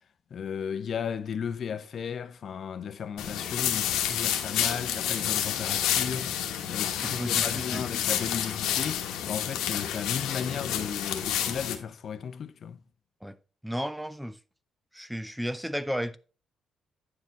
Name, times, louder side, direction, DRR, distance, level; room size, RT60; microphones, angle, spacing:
voice 1, 0.3-12.8, left 7 dB, 55° left, 0.7 m, -35 dB
sound 1, 3.2-11.8, left 10 dB, 90° left, 1.1 m, -29 dB
voice 2, 7.0-8.1 13.2-13.4 13.6-14.4 14.9-16.2, equal, ahead, 0.4 m, -34 dB
9.5 x 4.8 x 4.3 m
cardioid pair, 90°, 0 cm